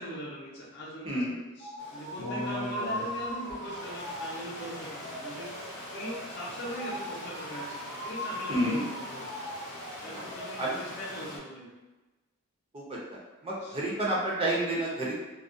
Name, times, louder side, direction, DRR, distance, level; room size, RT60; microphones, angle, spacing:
voice 1, 0.0-1.2 1.6-5.5 5.9-9.4 10.0-11.7 13.6-13.8, equal, 50° left, -4 dB, 0.6 m, -41 dB
sound 1, 1.6-10.5, equal, 90° right, 0.6 m, -40 dB
Stream, 1.8-11.4, left 1 dB, 90° left, 0.7 m, -41 dB
voice 2, 8.5-8.8 10.1-10.3 10.6-10.8 12.7-13.0 13.4-15.1, right 1 dB, 25° right, -4 dB, 0.5 m, -29 dB
2.3 x 2.1 x 2.5 m, 1.1 s
head